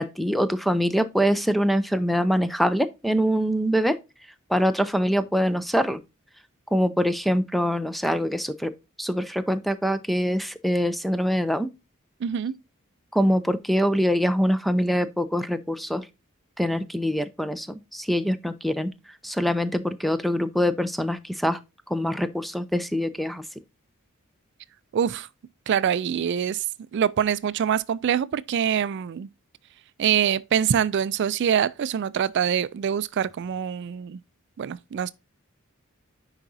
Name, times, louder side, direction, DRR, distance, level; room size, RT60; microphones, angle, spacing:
voice 1, 0.0-4.0 4.5-6.0 6.7-8.7 9.0-11.7 13.1-16.0 16.6-17.7 17.9-18.9 19.2-21.6 21.9-23.4, equal, ahead, 0.5 m, -24 dB
voice 2, 12.2-12.6 24.9-25.3 25.7-26.7 26.9-29.3 30.0-34.2 34.6-35.1, right 8 dB, 55° right, 0.3 m, -24 dB
9.8 x 4.8 x 2.7 m
head